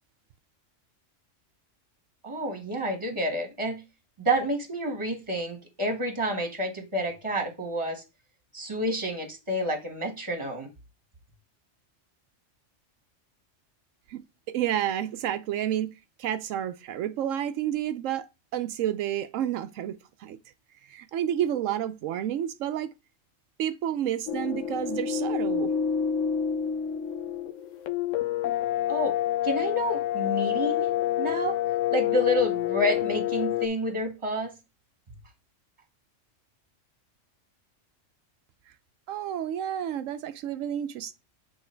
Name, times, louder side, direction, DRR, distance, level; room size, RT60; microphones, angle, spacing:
voice 1, 2.2-3.8 4.2-8.0 8.5-10.7 28.9-29.2 29.4-30.9 31.2-31.6 31.9-34.5, equal, 25° right, 1.5 m, -29 dB
voice 2, 14.5-15.9 16.2-20.4 20.9-22.9 23.6-25.7 39.1-41.1, right 10 dB, 90° right, 1.0 m, -30 dB
sound 1, 24.3-33.7, left 10 dB, 80° left, 0.9 m, -28 dB
8.0 x 3.2 x 4.4 m
omnidirectional pair, 1.3 m